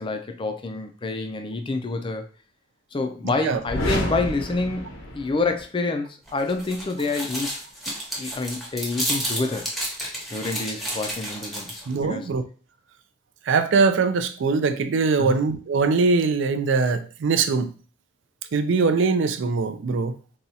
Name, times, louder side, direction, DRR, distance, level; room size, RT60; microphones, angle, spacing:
voice 1, 0.0-2.3 2.9-4.8 5.1-7.5 7.9-9.7 10.3-12.3 15.2-15.4, left 3 dB, 25° left, 6 dB, 0.4 m, -28 dB
sound 1, 3.6-5.6, left 1 dB, 90° left, 1.0 m, -29 dB
sound 2, 6.3-11.9, equal, ahead, 0.7 m, -31 dB
voice 2, 11.9-12.4 13.5-17.7 18.5-20.1, right 4 dB, 60° right, 9 dB, 0.4 m, -22 dB
4.1 x 2.3 x 2.7 m, 0.38 s
head